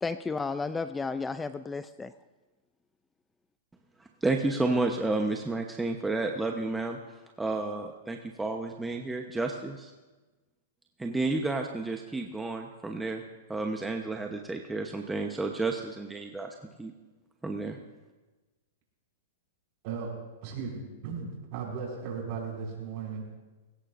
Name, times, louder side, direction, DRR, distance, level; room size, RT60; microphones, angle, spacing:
voice 1, 0.0-2.1, left 4 dB, 10° left, 12 dB, 0.4 m, -33 dB
voice 2, 4.0-7.0 7.4-9.9 11.0-13.2 13.5-16.9 17.4-17.8, right 2 dB, 10° right, 3 dB, 0.9 m, -31 dB
voice 3, 20.4-23.3, right 5 dB, 50° right, -1 dB, 5.6 m, -36 dB
21.0 x 17.5 x 2.6 m, 1.2 s
hypercardioid pair, 130°, 0 cm